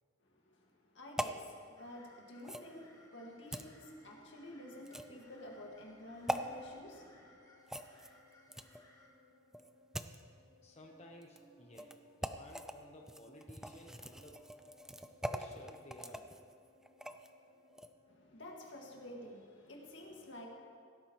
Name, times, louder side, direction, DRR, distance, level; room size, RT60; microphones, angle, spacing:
voice 1, 0.3-7.4 18.1-20.5, left 1 dB, 80° left, 0 dB, 1.9 m, -51 dB
sound 1, 1.2-1.4 2.4-2.7 3.5-3.7 4.8-5.2 6.3-6.4 7.7-8.8 9.5-10.2 11.2-11.4 11.7-11.9 12.2-12.7 13.1-17.3 17.7-17.9, right 1 dB, 5° right, 0.4 m, -42 dB
sound 2, 1.8-9.1, left 1 dB, 20° left, 1.7 m, -65 dB
sound 3, 2.1-19.1, equal, 30° right, 2.2 m, -67 dB
voice 2, 10.6-14.5 15.2-16.5, left 1 dB, 35° left, 1 dB, 0.9 m, -56 dB
17.0 x 13.0 x 3.1 m, 2.2 s
head